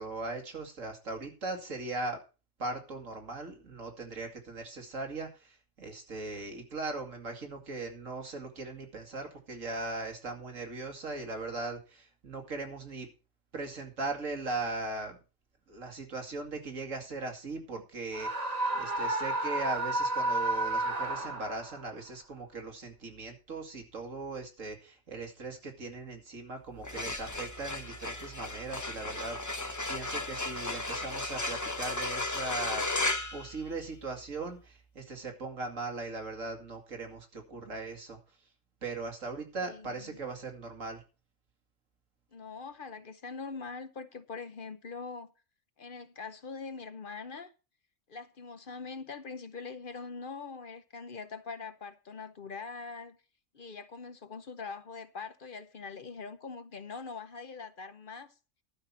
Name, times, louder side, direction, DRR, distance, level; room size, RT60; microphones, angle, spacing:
voice 1, 0.0-2.2 2.6-13.1 13.5-15.2 15.7-32.8 33.3-38.2 38.8-41.0, right 3 dB, 90° right, 2.6 m, -39 dB
Screaming, 18.1-21.8, right 2 dB, 35° right, 1.2 m, -31 dB
sound 1, 26.7-34.2, left 2 dB, 15° left, 0.8 m, -35 dB
voice 2, 39.7-40.2 42.3-45.3 45.8-47.5 48.1-53.2 53.5-58.3, left 4 dB, 50° left, 0.9 m, -43 dB
12.0 x 5.8 x 7.3 m
omnidirectional pair, 1.3 m